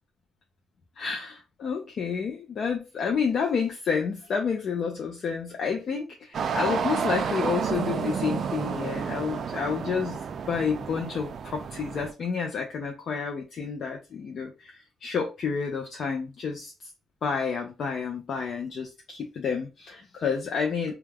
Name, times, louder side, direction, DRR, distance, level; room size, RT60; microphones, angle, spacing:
voice 1, 1.0-10.2 10.5-16.7 17.2-20.9, left 6 dB, 60° left, 0.5 m, -30 dB
sound 1, 6.3-12.1, right 7 dB, 55° right, 0.3 m, -31 dB
2.2 x 2.2 x 3.3 m
cardioid pair, 90°, 0 cm